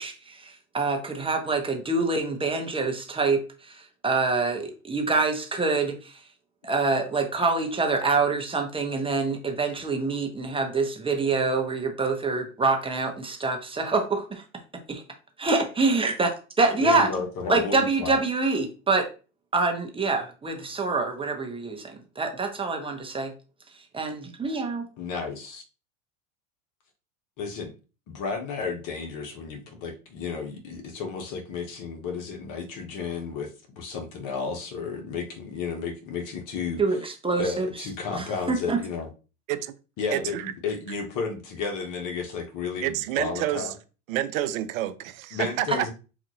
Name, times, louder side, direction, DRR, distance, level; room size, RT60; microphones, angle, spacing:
voice 1, 0.0-6.2 6.6-14.4 14.9-15.0 15.4-16.3 16.6-17.1 17.5-19.1 19.5-23.3 23.9-24.8 36.8-37.7 38.1-38.8, right 3 dB, 15° right, 0.7 m, -26 dB
voice 2, 16.8-18.2 25.0-25.6 27.4-27.7 28.1-33.5 33.8-36.8 37.4-39.1 40.0-43.7 45.3-45.9, left 5 dB, 50° left, 1.1 m, -32 dB
voice 3, 40.1-40.5 42.8-43.7 44.1-45.9, right 13 dB, 70° right, 0.5 m, -28 dB
3.9 x 2.5 x 2.9 m
hypercardioid pair, 90°, 41 cm